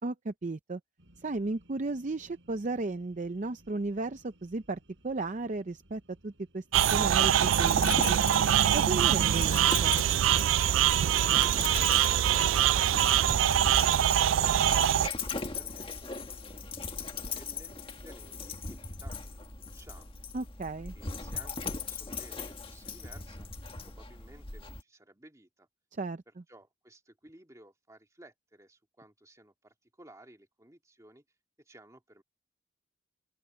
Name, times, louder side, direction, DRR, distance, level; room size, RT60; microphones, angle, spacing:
voice 1, 0.0-0.8 1.2-8.2 8.7-10.0 20.3-20.9 26.0-26.2, right 3 dB, 40° right, 0.5 m, -35 dB
sound 1, 1.0-8.3, right 1 dB, 70° right, 4.6 m, -61 dB
sound 2, 6.7-15.1, right 10 dB, 90° right, 0.4 m, -24 dB
Dog, 7.6-24.8, left 4 dB, 30° left, 1.7 m, -39 dB
voice 2, 14.0-17.7 18.0-20.1 20.9-23.5 23.8-25.7 26.3-31.2 31.6-32.2, right 1 dB, 15° right, 2.2 m, -56 dB
open air
head